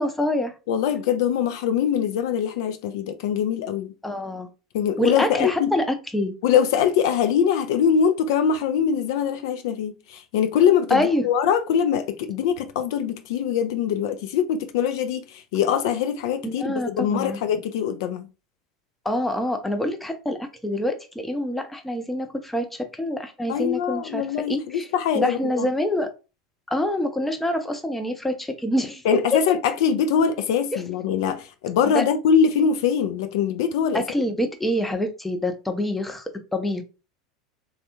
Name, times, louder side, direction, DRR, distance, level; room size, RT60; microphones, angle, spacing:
voice 1, 0.0-0.5 4.0-4.5 5.0-6.3 10.9-11.3 16.4-17.4 19.0-24.9 25.1-26.1 26.7-29.4 30.7-30.8 31.9-32.0 33.9-36.8, left 1 dB, 5° left, 0.6 m, -26 dB
voice 2, 0.7-3.9 4.7-5.7 6.4-18.3 23.5-25.7 29.0-34.0, left 8 dB, 60° left, 0.3 m, -23 dB
3.3 x 2.2 x 2.8 m
figure-of-eight pair, 80°, 2 cm